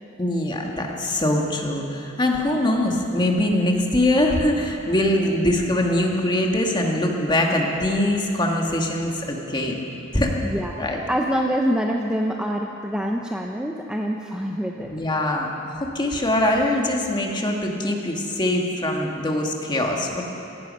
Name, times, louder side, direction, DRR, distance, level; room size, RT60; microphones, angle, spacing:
voice 1, 0.2-9.8 10.1-10.4 10.8-11.0 14.9-20.2, left 1 dB, 20° left, 1 dB, 1.7 m, -23 dB
voice 2, 10.4-14.9, equal, 5° right, 1 dB, 0.6 m, -25 dB
16.5 x 15.0 x 5.4 m, 2.8 s
head